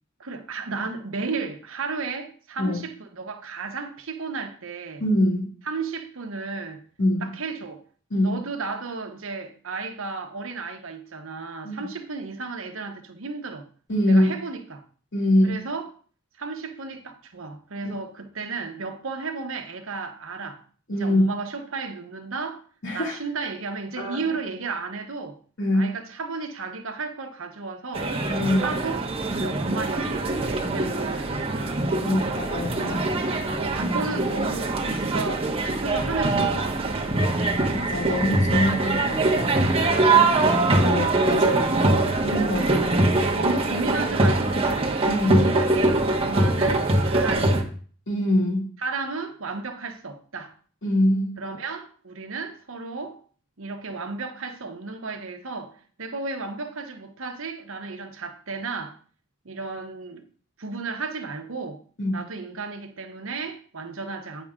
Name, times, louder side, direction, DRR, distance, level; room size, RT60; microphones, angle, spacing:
voice 1, 0.2-5.0 5.6-6.8 7.2-7.8 8.2-13.7 14.1-14.8 15.4-15.9 16.4-20.6 20.9-22.6 22.9-25.4 25.7-28.1 28.6-29.0 29.4-31.8 32.8-33.3 33.6-37.5 40.1-40.6 42.5-42.9 43.3-45.0 45.4-47.7 48.8-50.5 51.4-53.2 53.6-59.0 59.4-60.3 60.6-61.8 62.1-64.5, right 4 dB, 65° right, 1.0 m, -33 dB
voice 2, 5.0-5.5 7.0-7.3 8.1-8.4 11.6-11.8 13.9-14.3 15.1-15.6 17.8-17.9 20.9-21.2 22.8-23.2 24.0-24.2 25.6-25.9 28.3-28.7 32.0-32.9 37.7-39.3 40.1-40.3 40.8-41.7 42.2-42.7 43.4-43.5 45.1-45.4 48.1-48.6 50.8-51.3 62.0-62.2, left 1 dB, 60° left, 2.7 m, -23 dB
sound 1, 27.9-47.6, right 2 dB, 30° right, 1.0 m, -23 dB
9.4 x 5.4 x 3.7 m
head